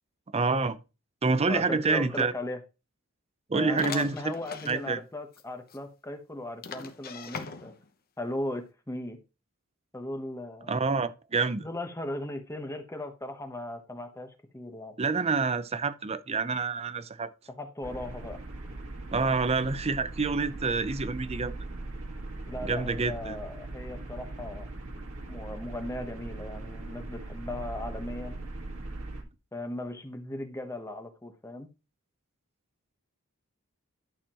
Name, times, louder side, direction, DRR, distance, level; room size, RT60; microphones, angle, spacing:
voice 1, 0.3-0.8 1.2-2.3 3.5-4.3 4.7-5.0 10.7-11.7 15.0-17.3 19.1-21.6 22.6-23.4, right 4 dB, 30° right, 0.6 m, -27 dB
voice 2, 1.5-2.6 3.5-7.7 8.2-9.2 9.9-10.7 11.6-14.9 17.6-18.4 22.5-24.7 25.3-28.4 29.5-31.7, left 1 dB, 15° left, 1.1 m, -37 dB
sound 1, 3.8-4.8 5.3-5.4 5.7-5.8 6.6-7.9, left 5 dB, 45° left, 0.9 m, -40 dB
sound 2, 17.8-29.2, right 2 dB, 75° right, 1.8 m, -40 dB
11.5 x 6.7 x 3.0 m
head